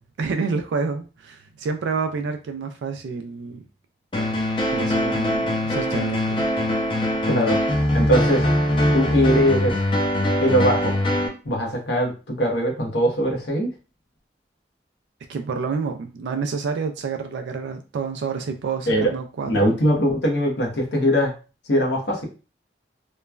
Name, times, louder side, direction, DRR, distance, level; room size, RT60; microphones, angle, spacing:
voice 1, 0.2-3.6 4.7-6.3 15.3-19.8, right 5 dB, 85° right, 6 dB, 0.3 m, -28 dB
sound 1, 4.1-11.3, left 1 dB, 30° left, 0.4 m, -22 dB
voice 2, 7.3-7.6 7.9-8.5 8.9-9.8 10.4-10.9 11.4-13.7 18.9-19.1 19.5-21.3 21.7-22.2, equal, 75° left, 0 dB, 0.9 m, -21 dB
3.0 x 2.1 x 2.3 m, 0.32 s
head